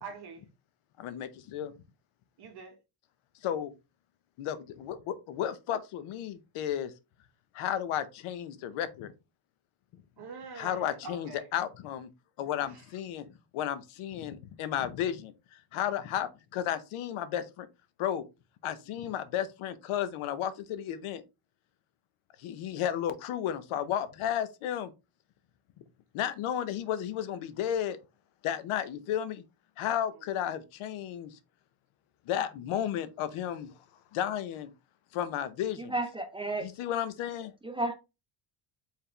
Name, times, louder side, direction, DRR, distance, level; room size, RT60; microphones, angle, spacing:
voice 1, 0.0-0.4 2.4-2.7 10.2-11.5 12.7-12.8, right 4 dB, 50° right, 1.2 m, -44 dB
voice 2, 1.0-1.7 3.3-3.7 4.4-6.9 7.5-9.1 10.5-12.1 12.4-17.7 18.0-18.2 18.6-21.2 22.4-24.9 26.1-28.0 28.4-29.4 29.8-31.4 32.2-33.7 34.1-34.7 35.1-35.9 36.6-37.5, left 10 dB, 75° left, 0.8 m, -33 dB
voice 3, 35.9-36.7 37.6-38.0, right 2 dB, 10° right, 0.4 m, -32 dB
4.6 x 3.5 x 3.2 m
cardioid pair, 150°, 50 cm